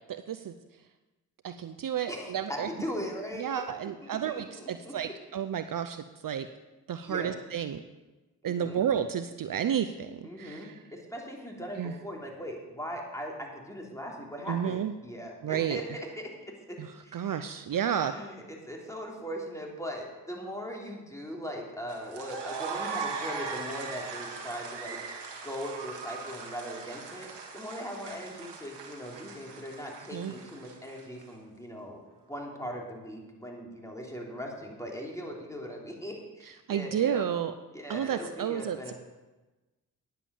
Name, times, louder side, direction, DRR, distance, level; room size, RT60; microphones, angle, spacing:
voice 1, 0.1-0.5 1.4-2.7 3.4-6.5 6.9-7.8 8.4-10.8 11.8-11.9 14.5-14.9 15.4-15.8 16.8-18.1 30.1-30.3 36.7-37.5 37.9-38.9, right 9 dB, 50° right, 10 dB, 0.7 m, -31 dB
voice 2, 2.1-3.5 4.0-5.1 7.0-7.3 8.4-8.8 10.2-17.3 17.7-27.3 27.5-32.0 32.3-37.3 37.7-38.9, equal, 5° left, -1 dB, 3.4 m, -40 dB
sound 1, 21.9-31.2, right 5 dB, 80° right, 1.6 m, -40 dB
9.9 x 7.7 x 7.1 m, 1.1 s
supercardioid pair, 40°, 41 cm